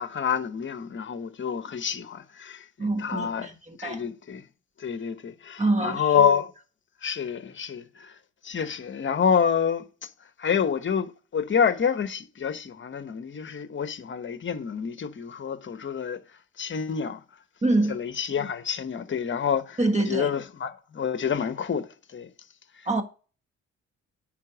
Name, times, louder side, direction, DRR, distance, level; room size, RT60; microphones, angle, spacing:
voice 1, 0.0-3.5 3.8-4.4 4.8-6.5 7.0-8.1 8.4-10.1 10.4-16.2 16.6-17.2 17.9-19.8 20.1-21.9 22.1-22.3, left 7 dB, 40° left, 1.0 m, -28 dB
voice 2, 2.8-4.0 5.6-6.1 17.6-18.0 19.8-20.3 22.8-23.0, right 2 dB, 20° right, 1.5 m, -25 dB
9.9 x 3.6 x 6.1 m
cardioid pair, 90°, 30 cm